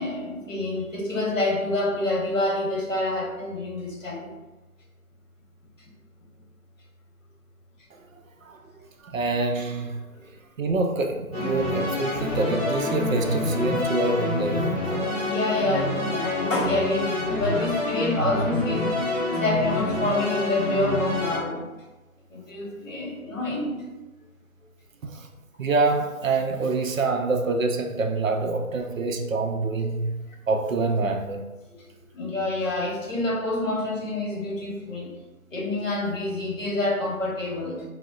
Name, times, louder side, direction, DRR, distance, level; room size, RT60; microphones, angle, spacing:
voice 1, 0.0-4.3 10.1-10.3 15.2-18.9 19.4-21.6 22.3-23.8 31.8-35.2 35.5-37.8, left 2 dB, 60° left, -2 dB, 1.0 m, -27 dB
voice 2, 9.0-10.0 10.6-15.1 25.0-25.3 25.6-30.1 30.5-31.4, right 3 dB, 65° right, 3 dB, 0.5 m, -26 dB
sound 1, 11.3-21.4, left 1 dB, 25° left, 0.8 m, -27 dB
4.9 x 2.0 x 2.3 m, 1.1 s
hypercardioid pair, 175°, 43 cm